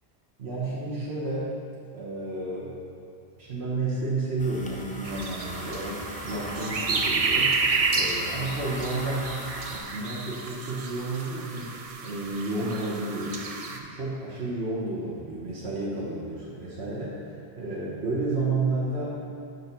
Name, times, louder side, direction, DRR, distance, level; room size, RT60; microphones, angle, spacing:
voice 1, 0.4-1.5 1.9-2.7 3.4-7.6 7.9-9.3 9.7-13.4 13.7-19.2, right 2 dB, 75° right, -7 dB, 1.4 m, -31 dB
sound 1, 4.4-9.8, left 1 dB, 10° left, 0.5 m, -39 dB
sound 2, 5.0-13.8, right 4 dB, 45° right, 0.5 m, -30 dB
6.3 x 5.5 x 5.9 m, 2.5 s
omnidirectional pair, 1.1 m